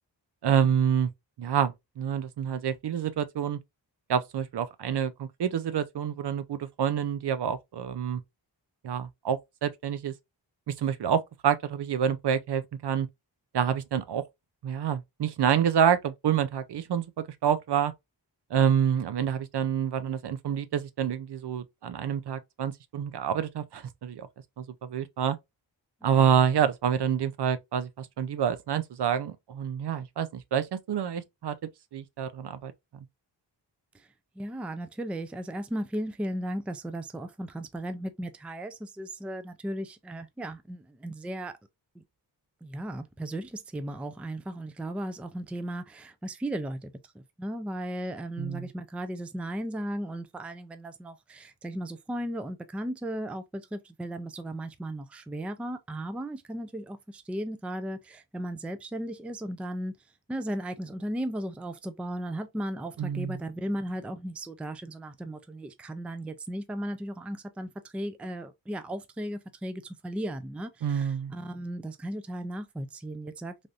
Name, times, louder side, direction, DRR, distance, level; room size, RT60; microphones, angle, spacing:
voice 1, 0.4-1.1 1.4-3.6 4.1-8.2 8.8-10.1 10.7-13.1 13.5-14.2 14.6-17.9 18.5-24.3 24.6-25.4 26.0-31.6 31.9-33.0 48.4-48.7 63.0-63.4 70.8-71.3, right 8 dB, 65° right, 0.6 m, -27 dB
voice 2, 34.4-41.6 41.9-42.0 42.6-59.9 60.3-73.7, right 1 dB, 5° right, 0.3 m, -36 dB
3.4 x 2.6 x 2.4 m
wide cardioid pair, 80°, 43 cm